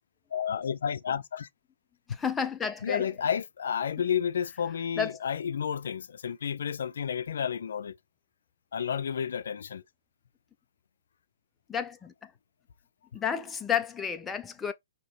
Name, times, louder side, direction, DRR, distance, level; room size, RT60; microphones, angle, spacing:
voice 1, 0.3-1.5 2.8-8.0 8.7-9.8, left 8 dB, 70° left, 0.4 m, -31 dB
voice 2, 2.2-3.1 5.0-5.1 11.7-12.1 13.1-14.7, left 7 dB, 10° left, 0.4 m, -31 dB
5.4 x 2.8 x 3.2 m
hypercardioid pair, 155°, 0 cm